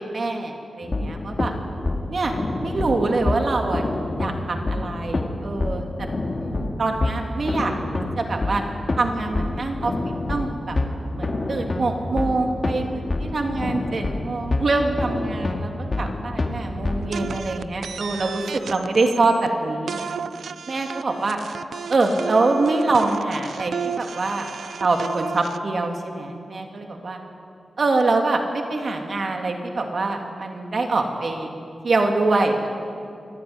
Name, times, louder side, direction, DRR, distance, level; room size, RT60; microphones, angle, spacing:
voice 1, 0.1-1.5 2.1-3.9 4.2-6.1 6.4-8.6 9.0-9.9 10.3-10.8 11.1-20.0 20.7-21.4 21.9-24.5 24.8-27.2 27.8-31.5 31.8-32.7, right 3 dB, 50° right, 3 dB, 2.8 m, -24 dB
sound 1, 0.8-17.4, left 2 dB, 35° left, 2.2 m, -27 dB
sound 2, 17.1-19.5 19.9-25.6, right 6 dB, 85° right, 0.6 m, -33 dB
24.5 x 15.0 x 9.6 m, 2.5 s
wide cardioid pair, 135°, 0 cm